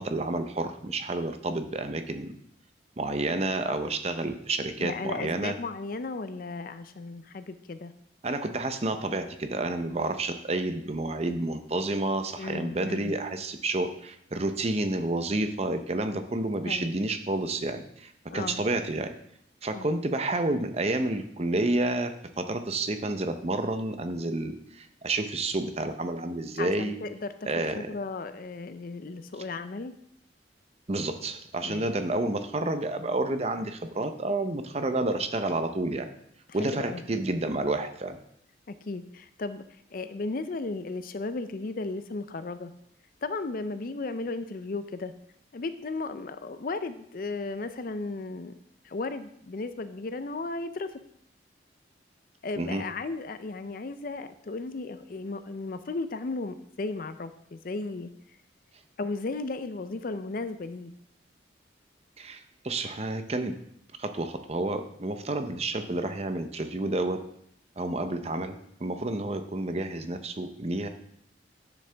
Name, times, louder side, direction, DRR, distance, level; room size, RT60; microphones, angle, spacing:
voice 1, 0.0-2.3 3.0-5.5 8.2-19.1 19.6-22.1 22.4-27.0 27.4-27.9 30.9-36.1 36.5-38.2 52.6-52.8 62.2-63.5 64.0-67.2 67.8-70.9, right 2 dB, 35° right, 8 dB, 0.7 m, -30 dB
voice 2, 4.8-7.9 12.4-13.1 16.6-16.9 18.3-18.6 19.7-19.9 26.6-27.3 27.7-29.9 31.6-31.9 36.5-37.0 38.8-39.6 39.9-42.7 43.2-45.1 45.5-48.5 48.8-51.0 52.4-58.1 59.0-60.9, left 3 dB, 50° left, 11 dB, 0.5 m, -35 dB
10.0 x 6.6 x 3.4 m, 0.71 s
head